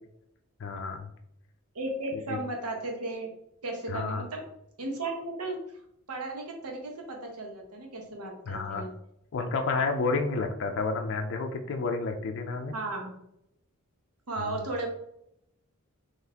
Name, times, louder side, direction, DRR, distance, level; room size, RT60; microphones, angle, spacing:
voice 1, 0.6-1.1 2.1-2.4 3.9-4.2 8.5-8.9 9.3-12.7 14.4-14.6, left 4 dB, 55° left, 4 dB, 0.4 m, -30 dB
voice 2, 1.7-3.3 3.6-4.4 4.8-5.6 6.1-8.9 12.7-13.1 14.3-14.9, right 2 dB, 90° right, 2 dB, 1.0 m, -35 dB
4.0 x 2.9 x 2.8 m, 0.77 s
head